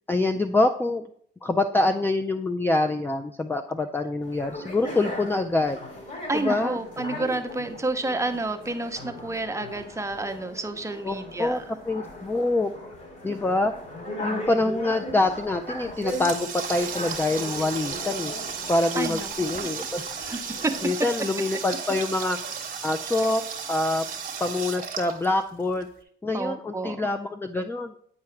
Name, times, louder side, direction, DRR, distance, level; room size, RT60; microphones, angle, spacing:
voice 1, 0.1-1.1 1.4-5.8 6.3-6.8 11.0-12.7 13.2-13.7 14.2-18.3 18.7-20.0 20.8-22.4 22.8-23.4 23.7-24.1 24.4-25.9 26.2-28.0, left 2 dB, 10° left, 6 dB, 0.3 m, -25 dB
sound 1, 4.2-20.9, equal, 45° left, 2.5 m, -38 dB
voice 2, 6.3-11.6 19.0-19.6 20.3-20.7 26.3-27.1, right 2 dB, 15° right, 6 dB, 0.7 m, -30 dB
Water tap faucet, 15.6-25.8, right 6 dB, 45° right, 1.0 m, -34 dB
8.5 x 4.7 x 3.2 m, 0.64 s
cardioid pair, 90°, 20 cm